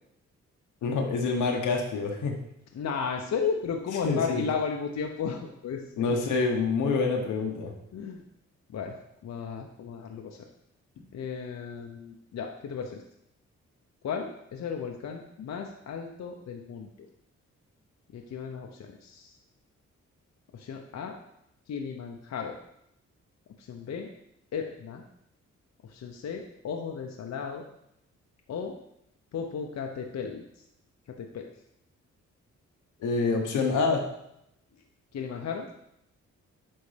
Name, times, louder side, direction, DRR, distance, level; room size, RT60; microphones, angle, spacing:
voice 1, 0.8-2.4 4.0-4.4 6.0-7.7 33.0-34.0, left 4 dB, 90° left, 1 dB, 1.2 m, -26 dB
voice 2, 2.7-6.1 7.9-8.2 8.7-9.0 9.2-10.5 11.1-13.0 14.0-17.1 18.1-19.3 20.5-21.1 21.7-22.6 23.6-24.1 24.5-25.0 25.8-27.6 28.5-28.8 29.3-30.4 31.1-31.5 35.1-35.7, left 6 dB, 65° left, 2 dB, 0.8 m, -34 dB
9.6 x 3.6 x 3.4 m, 0.78 s
cardioid pair, 65°, 30 cm